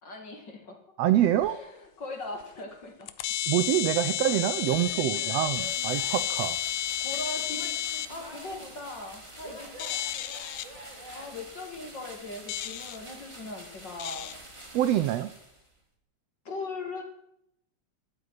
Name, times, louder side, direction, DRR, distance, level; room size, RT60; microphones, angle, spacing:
voice 1, 0.0-0.8 1.4-3.1 7.0-9.9 11.1-14.4 16.4-17.0, left 2 dB, 40° left, 3 dB, 2.7 m, -40 dB
voice 2, 1.0-1.6 3.5-6.6 14.7-15.3, right 12 dB, 80° right, 13 dB, 1.5 m, -26 dB
sound 1, 1.4-1.5 2.4-2.5 3.0-8.1 9.8-10.6 12.5-13.0 14.0-14.3, left 12 dB, 90° left, 2.2 m, -31 dB
Male speech man speaking / Yell / Laughter, 4.2-6.4 7.0-8.8 9.4-11.3, equal, 15° left, 2.7 m, -46 dB
sound 2, 5.4-15.8, right 1 dB, 10° right, 1.9 m, -48 dB
12.5 x 8.0 x 9.6 m, 0.76 s
omnidirectional pair, 3.5 m